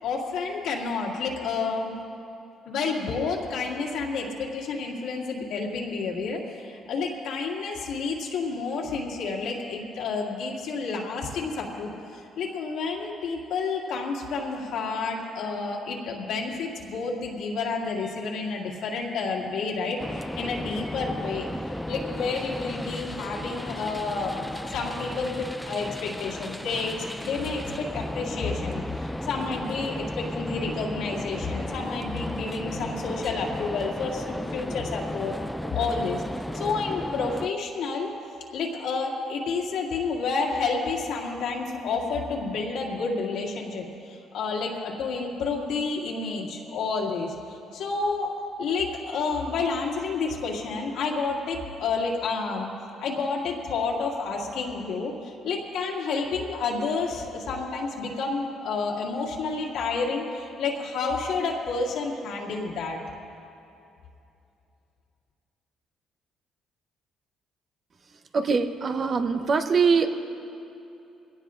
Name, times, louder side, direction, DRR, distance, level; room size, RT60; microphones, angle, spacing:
voice 1, 0.0-2.0 2.7-21.5 21.9-24.4 24.7-28.8 29.3-35.4 35.7-36.2 36.5-38.1 38.5-47.4 47.7-52.7 53.0-63.0, left 4 dB, 80° left, -2 dB, 2.2 m, -30 dB
sound 1, 20.0-37.5, left 1 dB, 5° left, 0.3 m, -34 dB
voice 2, 68.3-70.1, right 5 dB, 45° right, 8 dB, 0.8 m, -23 dB
22.0 x 17.0 x 2.5 m, 2.7 s
cardioid pair, 100°, 0 cm